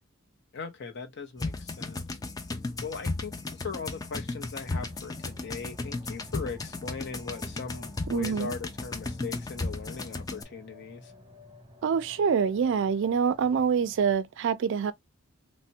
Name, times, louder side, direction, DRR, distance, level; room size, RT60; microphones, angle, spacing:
voice 1, 0.5-2.0 2.8-11.1, left 5 dB, 55° left, 0.7 m, -39 dB
sound 1, 1.4-10.4, left 3 dB, 20° left, 0.3 m, -35 dB
sound 2, 4.5-14.1, left 1 dB, 25° right, 0.8 m, -54 dB
voice 2, 8.1-8.5 11.8-14.9, right 6 dB, 60° right, 0.3 m, -25 dB
3.3 x 2.1 x 2.7 m
head